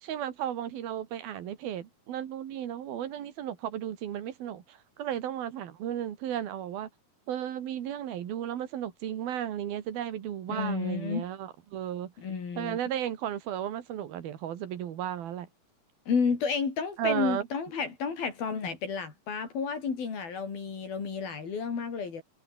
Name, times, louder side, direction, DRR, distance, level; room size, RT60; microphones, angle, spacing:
voice 1, 0.0-6.9 7.3-12.1 12.6-15.5 17.0-17.5, right 10 dB, 85° right, 3.9 m, -34 dB
voice 2, 10.5-11.2 12.2-12.8 16.1-22.2, left 5 dB, 80° left, 6.7 m, -31 dB
omnidirectional pair, 4.2 m